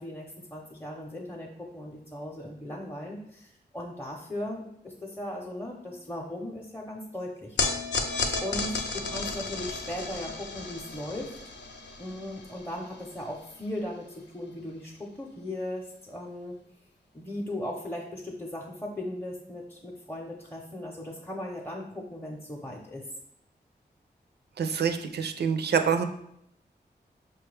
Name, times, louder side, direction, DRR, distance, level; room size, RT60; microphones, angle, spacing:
voice 1, 0.0-7.8 8.4-11.4 12.0-16.6 17.1-23.0, left 1 dB, 10° left, -2 dB, 0.6 m, -38 dB
sound 1, 7.6-14.0, left 4 dB, 85° left, 0.5 m, -34 dB
voice 2, 24.6-26.0, right 6 dB, 65° right, 7 dB, 0.4 m, -26 dB
5.6 x 2.2 x 3.2 m, 0.75 s
cardioid pair, 50°, 18 cm